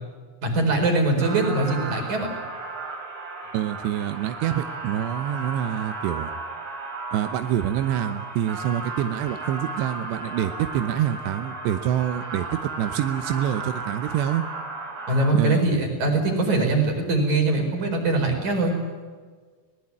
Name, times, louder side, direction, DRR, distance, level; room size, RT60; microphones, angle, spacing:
voice 1, 0.4-2.3 15.1-18.7, right 2 dB, 45° right, 3 dB, 5.9 m, -22 dB
sound 1, 1.2-15.3, right 3 dB, 65° right, 6.0 m, -35 dB
voice 2, 3.5-6.3 7.1-14.4 15.3-15.6, right 11 dB, 85° right, 9 dB, 3.1 m, -26 dB
23.0 x 19.5 x 9.6 m, 1.5 s
omnidirectional pair, 4.9 m